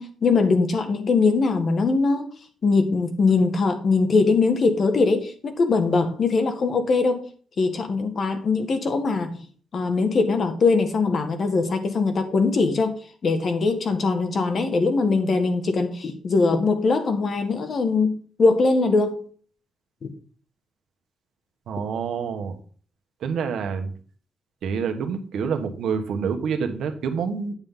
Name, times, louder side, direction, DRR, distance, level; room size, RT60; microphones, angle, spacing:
voice 1, 0.0-2.3 2.6-7.3 7.6-9.4 9.7-19.2 20.0-20.1, left 4 dB, 45° left, 7 dB, 1.6 m, -21 dB
voice 2, 21.7-22.6 23.2-23.9 24.6-27.5, right 6 dB, 80° right, 6 dB, 1.4 m, -27 dB
9.7 x 7.3 x 3.9 m, 0.43 s
cardioid pair, 125°, 0 cm